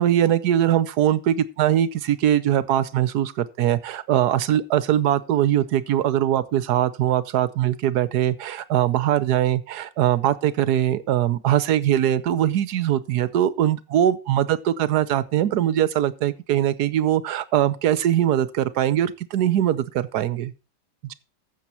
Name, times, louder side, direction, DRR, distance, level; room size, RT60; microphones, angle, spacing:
voice 1, 0.0-20.5 21.0-21.1, right 11 dB, 70° right, 1.3 m, -21 dB
14.5 x 7.0 x 4.4 m
omnidirectional pair, 1.9 m